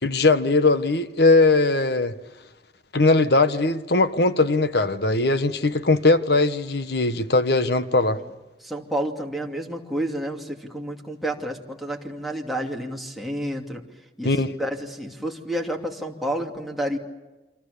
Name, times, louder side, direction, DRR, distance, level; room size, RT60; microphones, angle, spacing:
voice 1, 0.0-2.1 2.9-8.2 14.2-14.5, left 3 dB, 65° left, 1.4 m, -20 dB
voice 2, 8.6-13.8 14.2-17.0, right 1 dB, ahead, 2.8 m, -30 dB
28.5 x 26.0 x 6.9 m
head